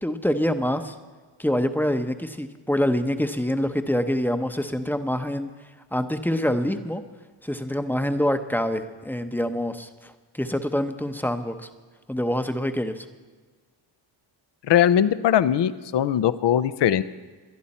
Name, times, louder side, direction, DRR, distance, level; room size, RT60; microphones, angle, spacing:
voice 1, 0.0-0.9 1.4-5.5 5.9-7.0 7.4-11.7 12.1-13.1, equal, 5° left, 8 dB, 0.8 m, -26 dB
voice 2, 14.6-17.0, left 10 dB, 60° left, 15 dB, 0.7 m, -20 dB
21.5 x 11.0 x 4.3 m, 1.4 s
cardioid pair, 90°, 49 cm